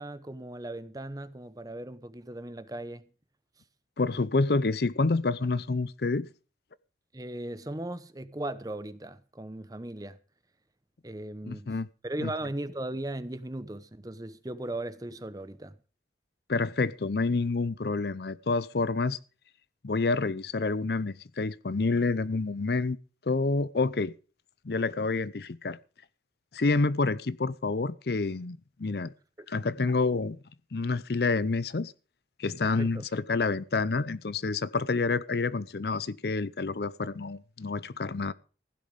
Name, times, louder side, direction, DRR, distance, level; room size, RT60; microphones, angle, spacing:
voice 1, 0.0-3.1 7.1-10.2 11.0-11.7 12.0-15.8 29.4-29.5 32.6-33.0, right 1 dB, 20° right, 0.8 m, -37 dB
voice 2, 4.0-6.3 11.5-11.9 12.2-12.3 16.5-19.2 19.8-23.0 23.2-24.1 24.6-25.8 26.5-29.1 29.5-30.4 30.7-31.9 32.4-38.3, left 3 dB, 60° left, 0.6 m, -28 dB
16.0 x 10.5 x 5.2 m
head